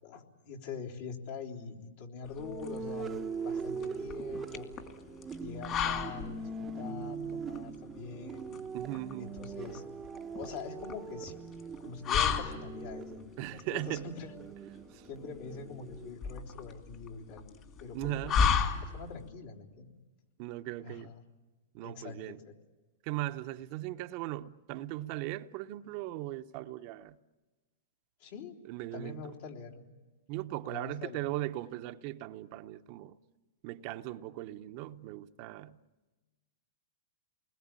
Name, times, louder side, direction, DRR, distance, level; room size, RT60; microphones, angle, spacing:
voice 1, 0.0-4.7 5.4-8.5 9.2-9.8 10.3-11.4 11.8-14.3 15.1-17.5 17.8-18.5 18.8-19.9 20.8-21.2 21.8-22.5 28.2-28.6 28.9-29.8 30.7-31.3, left 5 dB, 60° left, 3.4 m, -44 dB
sound 1, 2.2-19.3, left 7 dB, 35° left, 2.5 m, -35 dB
sound 2, 2.4-16.1, right 5 dB, 20° right, 0.8 m, -41 dB
voice 2, 8.7-9.3 13.4-14.1 14.9-15.1 17.9-18.5 20.4-21.2 21.7-22.4 23.0-27.2 28.7-29.2 30.3-33.2 33.6-35.8, right 15 dB, 45° right, 0.8 m, -38 dB
29.0 x 21.0 x 8.9 m
hypercardioid pair, 130°, 0 cm